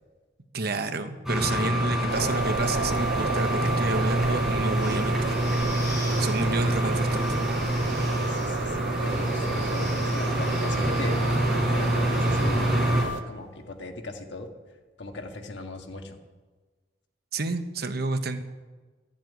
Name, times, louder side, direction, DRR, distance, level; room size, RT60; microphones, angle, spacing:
voice 1, 0.5-5.3 6.2-7.4 17.3-18.4, right 3 dB, 60° right, 8 dB, 1.0 m, -30 dB
sound 1, 1.3-13.0, right 1 dB, 5° right, 4.2 m, -26 dB
sound 2, 2.1-13.2, right 4 dB, 80° right, 0.5 m, -33 dB
sound 3, 4.7-13.0, left 1 dB, 20° left, 4.7 m, -45 dB
voice 2, 8.3-14.5 15.0-16.2, left 2 dB, 70° left, 4 dB, 1.6 m, -38 dB
12.5 x 7.4 x 9.3 m, 1.3 s
head